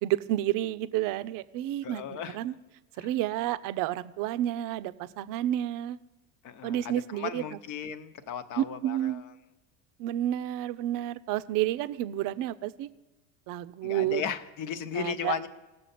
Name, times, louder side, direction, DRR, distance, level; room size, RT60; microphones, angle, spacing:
voice 1, 0.0-2.5 3.0-6.0 6.6-7.4 8.6-9.2 10.0-12.9 13.5-14.2 14.9-15.3, right 13 dB, 55° right, 15 dB, 0.6 m, -30 dB
voice 2, 1.8-2.4 3.0-3.1 6.4-9.2 13.8-15.5, left 7 dB, 50° left, 12 dB, 1.0 m, -36 dB
18.0 x 6.7 x 4.2 m, 1.1 s
supercardioid pair, 105°, 40 cm